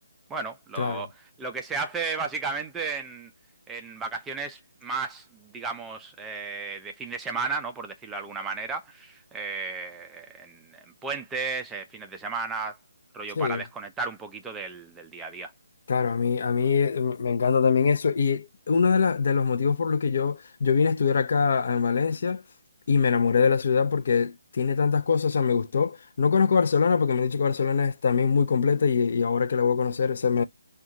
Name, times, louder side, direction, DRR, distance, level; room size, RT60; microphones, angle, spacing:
voice 1, 0.3-3.3 3.7-12.8 13.1-15.5, right 4 dB, 10° right, 0.4 m, -34 dB
voice 2, 15.9-22.4 22.9-30.4, left 5 dB, 50° left, 0.6 m, -23 dB
2.4 x 2.3 x 4.0 m
figure-of-eight pair, 145°, 0 cm